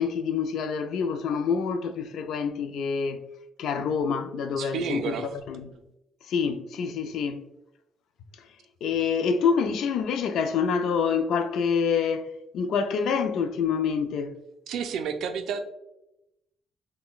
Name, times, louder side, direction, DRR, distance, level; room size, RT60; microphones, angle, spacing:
voice 1, 0.0-3.2 3.6-5.7 6.2-7.5 8.4-8.5 8.8-14.4, left 6 dB, 65° left, 0.3 m, -27 dB
voice 2, 4.5-5.3 14.7-15.6, right 6 dB, 70° right, 0.4 m, -30 dB
5.6 x 2.1 x 2.3 m
cardioid pair, 160°, 0 cm